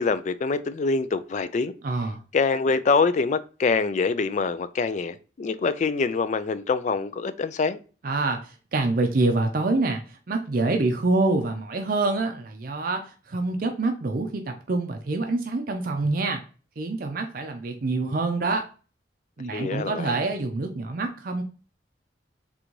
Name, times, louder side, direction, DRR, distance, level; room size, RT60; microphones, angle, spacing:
voice 1, 0.0-1.7 2.3-7.8 19.5-20.2, left 4 dB, 40° left, 0.3 m, -25 dB
voice 2, 1.8-2.2 8.0-16.4 16.8-18.6 19.4-21.4, right 2 dB, 50° right, 0.5 m, -26 dB
3.8 x 3.4 x 3.1 m
head